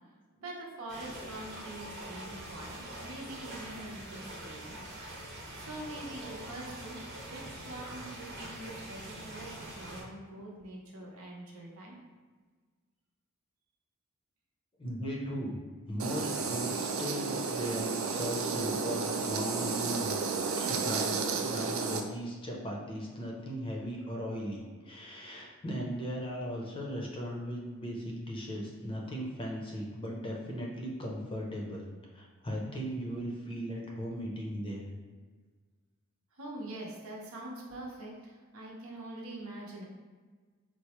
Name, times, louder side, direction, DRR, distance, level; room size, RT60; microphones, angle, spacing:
voice 1, 0.4-4.8 5.0-5.2 5.5-12.0 36.3-39.8, right 1 dB, 85° right, -3 dB, 0.8 m, -44 dB
sound 1, 0.9-10.0, right 1 dB, 50° right, 0.9 m, -44 dB
voice 2, 14.8-15.6 15.9-31.9 32.1-34.9, equal, 25° left, -2 dB, 0.5 m, -37 dB
sound 2, 16.0-22.0, right 4 dB, 70° right, 0.4 m, -32 dB
4.4 x 2.0 x 2.9 m, 1.4 s
head